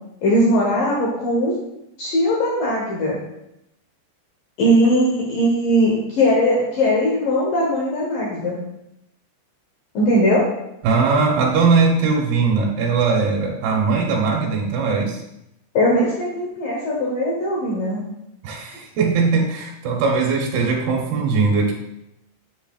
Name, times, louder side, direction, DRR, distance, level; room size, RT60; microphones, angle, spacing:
voice 1, 0.2-1.6 2.0-3.2 4.6-8.6 9.9-10.4 15.7-18.0, equal, 65° left, -3 dB, 2.4 m, -19 dB
voice 2, 10.8-15.2 18.4-21.7, right 4 dB, 70° right, -1 dB, 2.7 m, -20 dB
10.0 x 7.4 x 2.4 m, 0.85 s
omnidirectional pair, 5.0 m